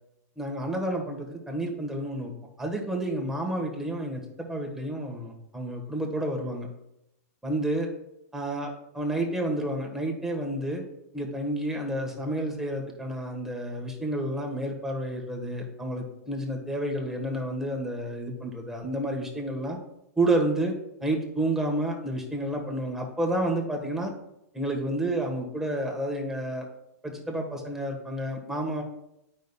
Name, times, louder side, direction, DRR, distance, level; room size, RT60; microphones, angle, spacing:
voice 1, 0.4-2.3 2.6-6.7 7.4-7.9 8.3-10.8 11.1-19.8 20.2-20.7 21.0-24.1 24.5-26.7 27.0-28.8, right 1 dB, 5° right, 0 dB, 1.3 m, -30 dB
9.1 x 5.4 x 2.3 m, 0.84 s
hypercardioid pair, 120°, 9 cm